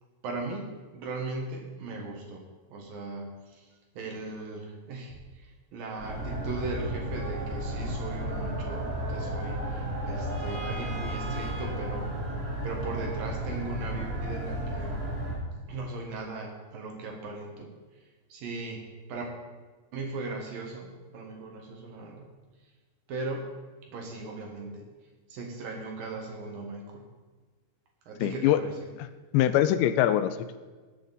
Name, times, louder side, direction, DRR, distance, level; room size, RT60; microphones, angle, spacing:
voice 1, 0.2-2.4 2.7-3.7 4.0-12.2 12.6-15.0 15.7-17.7 18.3-19.3 19.9-22.2 23.1-23.5 23.8-24.9 25.3-27.0 28.1-28.9, right 3 dB, 60° right, 1 dB, 2.7 m, -38 dB
sound 1, 6.0-15.3, right 1 dB, 20° right, 4.0 m, -33 dB
voice 2, 28.2-28.6 29.3-30.6, left 12 dB, 85° left, 12 dB, 2.8 m, -23 dB
19.0 x 8.3 x 4.1 m, 1.4 s
omnidirectional pair, 5.2 m